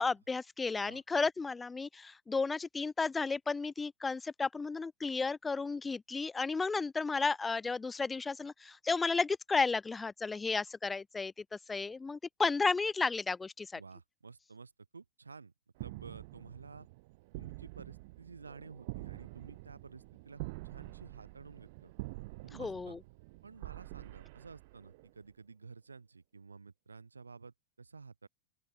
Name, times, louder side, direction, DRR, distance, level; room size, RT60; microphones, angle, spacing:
voice 1, 0.0-13.8 22.5-23.0, left 4 dB, 10° left, 0.4 m, -33 dB
voice 2, 13.7-15.5 15.8-16.9 17.4-21.9 22.4-23.0 23.4-28.3, right 4 dB, 75° right, 3.1 m, -52 dB
sound 1, 15.8-25.3, right 23 dB, 50° right, 0.9 m, -47 dB
open air
figure-of-eight pair, 90°, 0 cm